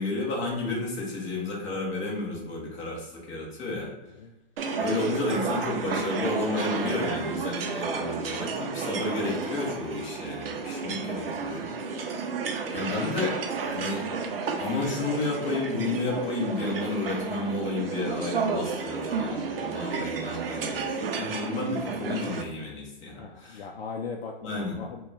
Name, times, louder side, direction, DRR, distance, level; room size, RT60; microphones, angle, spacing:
voice 1, 0.0-3.9 4.8-11.7 12.7-14.1 14.6-23.7 24.4-24.8, left 2 dB, 25° left, -3 dB, 1.1 m, -31 dB
sound 1, 4.6-22.4, right 5 dB, 70° right, 0.6 m, -32 dB
voice 2, 23.1-25.1, left 5 dB, 80° left, 1 dB, 0.5 m, -39 dB
2.9 x 2.4 x 3.9 m, 1.0 s
hypercardioid pair, 140°, 30 cm